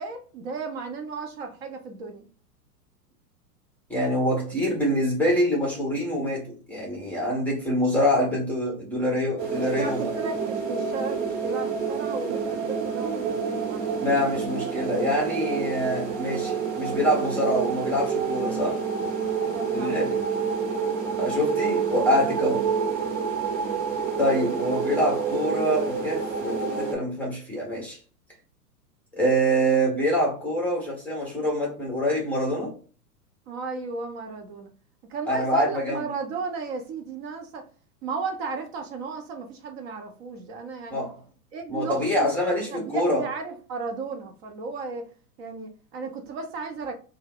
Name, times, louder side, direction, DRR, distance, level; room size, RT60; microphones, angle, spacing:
voice 1, 0.0-2.3 9.6-14.1 19.5-20.1 33.5-34.7 35.1-37.6 38.0-41.1 41.5-45.0 45.4-46.9, right 4 dB, 40° right, 0.7 m, -34 dB
voice 2, 3.9-10.1 14.0-18.8 19.7-20.2 21.2-22.6 24.2-28.0 29.2-32.7 35.3-36.0 40.9-41.2 41.7-43.3, equal, 5° left, 0.6 m, -25 dB
sound 1, 9.4-26.9, right 6 dB, 60° right, 1.1 m, -28 dB
2.7 x 2.3 x 3.4 m
figure-of-eight pair, 105°, 47 cm